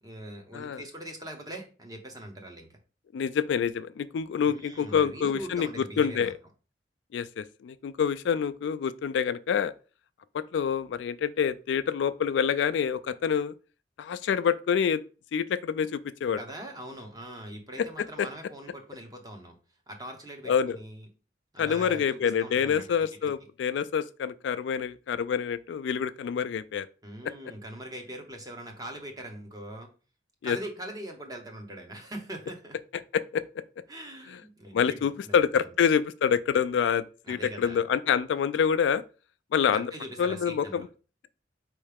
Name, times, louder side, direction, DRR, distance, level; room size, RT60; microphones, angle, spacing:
voice 1, 0.0-2.7 4.4-6.3 16.4-19.5 19.9-21.1 21.5-22.9 27.0-29.9 30.4-32.8 33.9-35.5 37.2-37.8 39.7-40.9, right 1 dB, 20° right, 1.0 m, -42 dB
voice 2, 0.5-0.8 3.1-5.7 6.0-6.3 7.1-9.7 10.3-13.5 14.0-15.0 15.3-16.4 18.2-18.3 20.5-20.8 21.6-26.9 30.4-30.6 33.1-33.4 34.3-34.4 34.7-39.0 39.5-39.9 40.2-40.9, left 7 dB, 80° left, 0.3 m, -27 dB
4.7 x 3.1 x 3.4 m
head